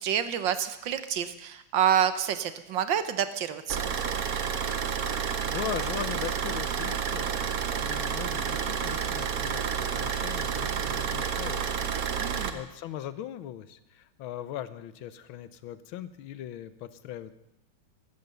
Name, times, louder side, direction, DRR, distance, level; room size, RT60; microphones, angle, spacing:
voice 1, 0.0-3.8 12.2-12.6, right 9 dB, 70° right, 12 dB, 1.6 m, -28 dB
Car / Idling, 3.7-12.5, right 7 dB, 55° right, 1.3 m, -30 dB
voice 2, 5.2-17.3, left 11 dB, 85° left, 14 dB, 1.6 m, -40 dB
15.5 x 12.0 x 6.7 m, 0.88 s
omnidirectional pair, 2.2 m